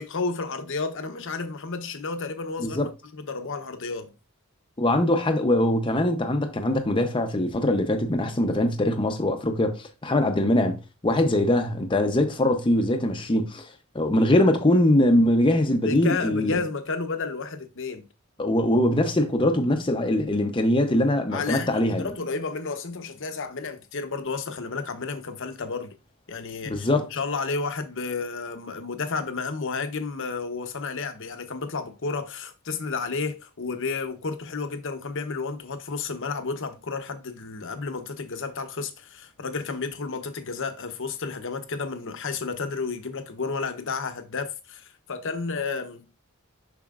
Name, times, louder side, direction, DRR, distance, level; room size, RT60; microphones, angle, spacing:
voice 1, 0.0-2.9 3.2-4.1 11.1-11.3 15.8-18.1 21.3-26.0 26.3-46.1, left 4 dB, 60° left, 0.9 m, -32 dB
voice 2, 4.8-13.6 13.9-16.5 18.4-22.1 26.7-27.1, left 1 dB, 25° left, 0.7 m, -22 dB
7.1 x 5.6 x 2.5 m
head